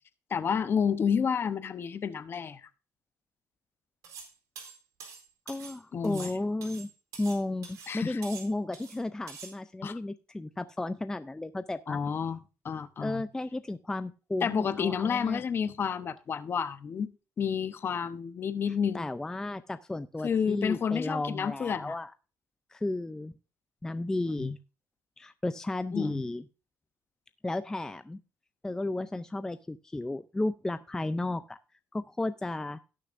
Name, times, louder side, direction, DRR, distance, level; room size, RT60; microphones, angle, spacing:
voice 1, 0.3-2.7 5.9-6.3 7.9-8.2 9.8-10.0 11.9-12.4 12.6-13.2 14.4-19.1 20.2-21.9 24.4-24.5 25.9-26.2, left 7 dB, 40° left, 0.8 m, -30 dB
sound 1, 4.0-4.3 4.6-5.8 6.0-7.4 7.6-7.9 8.2-9.0 9.3-9.5, right 6 dB, 85° right, 4.1 m, -45 dB
voice 2, 5.5-6.9 7.2-12.0 13.0-15.4 18.9-22.1 22.7-23.3 23.8-24.6 25.2-26.4 27.4-28.2 28.6-31.6 31.9-32.8, left 2 dB, 10° left, 0.4 m, -33 dB
17.5 x 6.7 x 2.5 m
cardioid pair, 120°, 6 cm